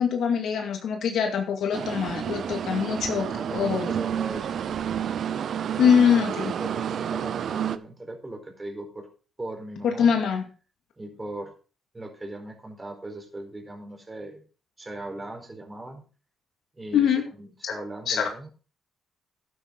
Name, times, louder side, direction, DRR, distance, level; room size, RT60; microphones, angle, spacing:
voice 1, 0.0-3.9 5.8-6.5 9.8-10.4 16.9-17.2 17.6-17.7 18.1-18.3, left 7 dB, 70° left, 4 dB, 2.3 m, -23 dB
sound 1, 1.7-7.8, right 9 dB, 60° right, 0.8 m, -30 dB
voice 2, 3.3-4.6 6.6-9.1 9.4-10.2 11.0-11.5 11.9-14.4 14.8-16.0 16.8-17.1 17.4-18.5, right 2 dB, 20° right, 3 dB, 4.6 m, -39 dB
12.5 x 9.7 x 4.1 m, 0.37 s
cardioid pair, 90°, 0 cm